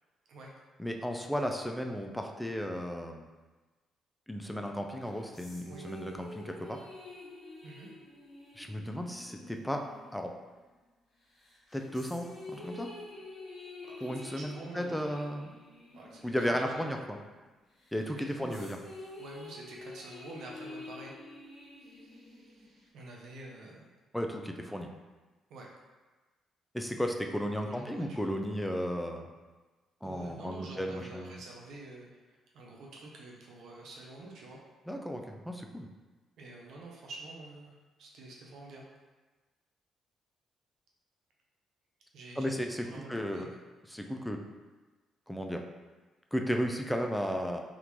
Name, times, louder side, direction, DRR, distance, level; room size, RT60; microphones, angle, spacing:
voice 1, 0.8-3.3 4.3-6.8 8.6-10.3 11.7-12.9 14.0-15.5 16.2-17.2 17.9-18.8 24.1-24.9 26.7-29.3 30.0-31.4 34.9-35.9 42.4-43.5 43.9-44.4 45.3-45.6 46.3-47.6, equal, 5° left, 3 dB, 0.4 m, -34 dB
sound 1, 4.9-10.9 11.4-17.4 17.8-22.9, left 2 dB, 50° left, 1.2 m, -49 dB
voice 2, 13.8-15.2 15.9-16.9 18.1-18.7 19.2-21.1 21.8-23.9 25.5-25.7 27.6-28.2 30.0-32.2 32.5-34.6 36.4-38.9 42.1-43.6, right 2 dB, 75° right, -2 dB, 0.6 m, -48 dB
3.5 x 2.4 x 3.0 m, 1.2 s
cardioid pair, 90°, 0 cm